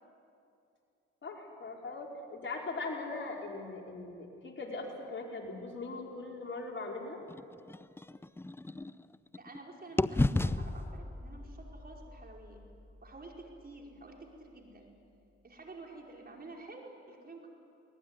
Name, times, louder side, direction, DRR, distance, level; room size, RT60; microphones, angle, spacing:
voice 1, 1.2-7.2, left 3 dB, 40° left, 0 dB, 4.9 m, -40 dB
sound 1, 7.3-9.6 10.0-13.9, left 2 dB, 10° left, 0.5 m, -35 dB
voice 2, 9.4-12.6 13.0-14.9 15.4-17.5, right 2 dB, 30° right, 0 dB, 5.0 m, -50 dB
22.5 x 20.0 x 9.8 m, 2.5 s
supercardioid pair, 65°, 29 cm